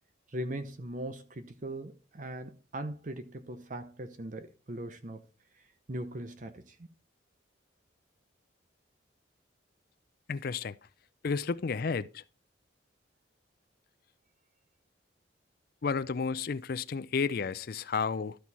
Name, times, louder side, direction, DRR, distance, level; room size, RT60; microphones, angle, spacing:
voice 1, 0.3-5.2 5.9-6.9, right 1 dB, 40° right, 0.7 m, -40 dB
voice 2, 10.3-10.8 11.2-12.2 15.8-18.4, left 5 dB, 50° left, 0.4 m, -32 dB
13.0 x 4.5 x 4.0 m
head